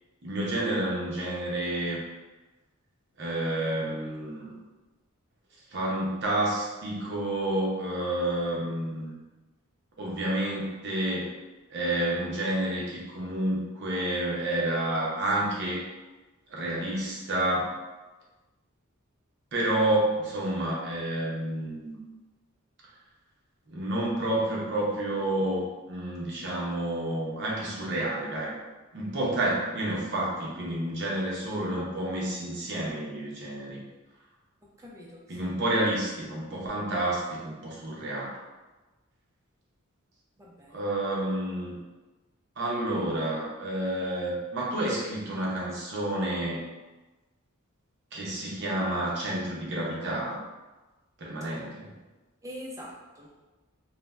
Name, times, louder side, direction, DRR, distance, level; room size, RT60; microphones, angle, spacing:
voice 1, 0.2-2.0 3.2-4.6 5.7-9.1 10.0-11.4 11.7-15.8 16.5-17.8 19.5-22.0 23.7-28.5 28.9-33.8 35.3-38.3 40.7-41.8 42.6-46.6 48.1-50.4 51.2-51.9, right 1 dB, 55° right, -4 dB, 0.7 m, -29 dB
voice 2, 34.8-35.5 40.4-40.8 52.4-53.4, equal, 15° right, -3 dB, 0.5 m, -44 dB
2.5 x 2.1 x 3.3 m, 1.1 s
head